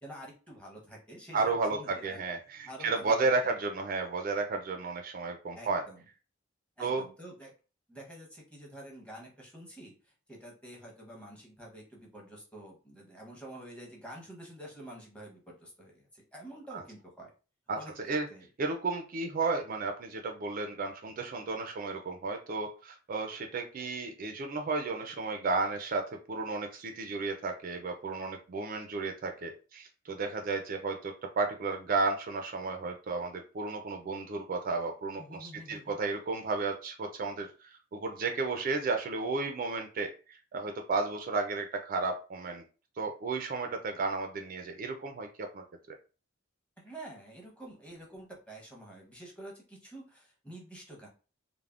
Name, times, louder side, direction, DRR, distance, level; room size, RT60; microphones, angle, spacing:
voice 1, 0.0-2.2 2.6-3.3 5.5-6.0 6.8-7.5 7.9-17.3 17.7-18.5 35.2-36.0 46.8-51.1, right 1 dB, 5° left, -2 dB, 0.8 m, -48 dB
voice 2, 1.3-5.8 6.8-7.0 17.7-17.8 18.1-18.2 18.6-42.6 43.0-45.6, right 3 dB, 45° right, 5 dB, 0.3 m, -33 dB
3.3 x 2.0 x 2.4 m, 0.35 s
head